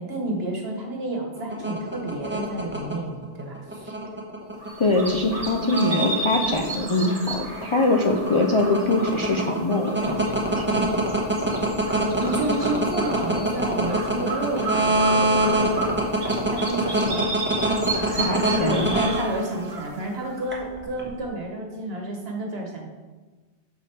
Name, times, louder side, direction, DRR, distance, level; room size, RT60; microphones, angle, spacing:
voice 1, 0.0-3.9 11.4-11.5 12.2-15.9 16.2-17.3 18.1-18.3 18.6-22.9, right 2 dB, 65° right, 1 dB, 1.5 m, -30 dB
sound 1, 1.4-19.7 20.5-21.1, right 2 dB, 10° right, 1.1 m, -24 dB
sound 2, 4.6-20.7, right 3 dB, 35° right, 1.3 m, -34 dB
voice 2, 4.8-10.8 18.1-18.9, left 2 dB, 40° left, 1 dB, 0.4 m, -23 dB
6.9 x 5.1 x 4.3 m, 1.3 s
omnidirectional pair, 1.1 m